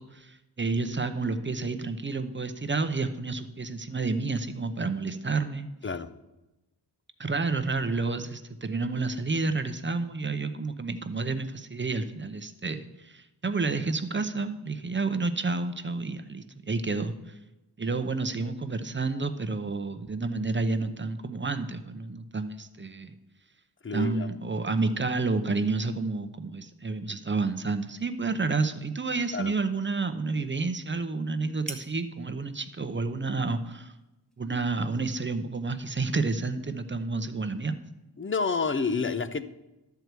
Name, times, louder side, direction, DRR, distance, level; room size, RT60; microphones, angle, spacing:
voice 1, 0.0-5.7 7.2-17.1 17.8-23.1 23.9-33.9 34.4-37.8, right 3 dB, 30° right, 0.7 m, -30 dB
voice 2, 23.8-24.3 29.3-29.5 38.2-39.4, left 4 dB, 30° left, 0.5 m, -29 dB
sound 1, 27.3-35.1, right 1 dB, ahead, 1.0 m, -51 dB
12.5 x 4.6 x 8.0 m
wide cardioid pair, 140°, 41 cm